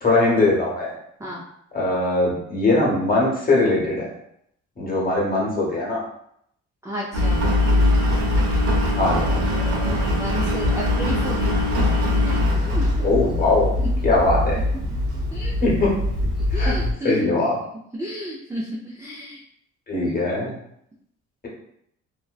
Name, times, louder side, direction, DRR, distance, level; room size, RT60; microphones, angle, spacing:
voice 1, 0.0-1.0 1.7-4.1 4.8-6.0 9.0-9.2 13.0-13.7 14.0-14.6 15.6-15.9 16.5-16.7 17.0-17.5 19.9-20.5, left 2 dB, 30° left, -4 dB, 0.9 m, -21 dB
voice 2, 6.8-7.4 8.7-11.5 12.2-13.0 13.8-14.0 14.7-14.8 15.3-15.6 16.5-17.1 18.0-19.4, equal, 10° right, -5 dB, 0.3 m, -33 dB
Engine, 7.1-16.9, left 1 dB, 75° right, 0.9 m, -21 dB
2.5 x 2.1 x 2.3 m, 0.73 s
cardioid pair, 90°, 30 cm